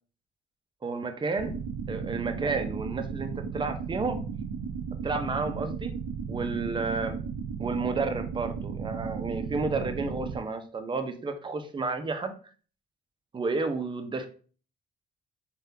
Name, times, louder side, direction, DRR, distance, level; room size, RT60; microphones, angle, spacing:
voice 1, 0.8-1.6 1.9-4.2 5.0-6.0 6.3-7.2 7.6-12.3 13.3-14.3, right 3 dB, 25° right, 7 dB, 0.5 m, -31 dB
sound 1, 1.4-10.4, right 6 dB, 80° right, 0.5 m, -35 dB
3.5 x 2.3 x 2.7 m, 0.40 s
cardioid pair, 90°, 20 cm